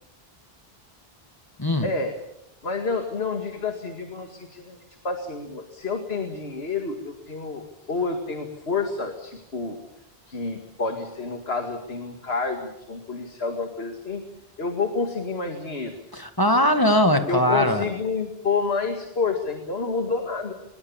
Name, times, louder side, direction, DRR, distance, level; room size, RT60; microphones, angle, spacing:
voice 1, 1.8-2.2 2.6-9.8 10.3-14.2 14.6-15.9 17.3-20.5, left 4 dB, 80° left, 4 dB, 2.4 m, -29 dB
voice 2, 16.1-17.9, equal, 20° left, 7 dB, 2.0 m, -20 dB
25.0 x 22.0 x 7.2 m, 0.83 s
omnidirectional pair, 1.0 m